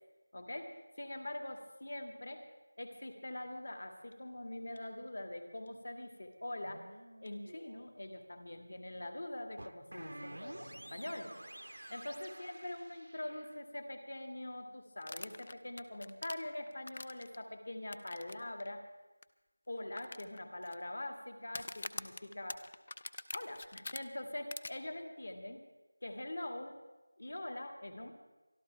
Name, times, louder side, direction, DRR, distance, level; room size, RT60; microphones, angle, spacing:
voice 1, 0.3-2.4 2.8-6.9 7.2-11.3 11.9-18.8 19.7-22.6 23.3-25.6 26.0-26.8 27.2-28.1, left 1 dB, 50° left, 5 dB, 2.0 m, -43 dB
sound 1, 4.7-4.8 6.5-7.8 9.6-13.6 17.1-17.2, right 1 dB, 75° right, 0.8 m, -51 dB
sound 2, 15.0-17.4 17.9-18.3 18.6-18.7 19.2-19.3 20.0-20.7 21.5-24.0 24.5-24.7, left 3 dB, 30° left, 0.5 m, -44 dB
24.0 x 12.5 x 3.4 m, 1.1 s
figure-of-eight pair, 175°, 0 cm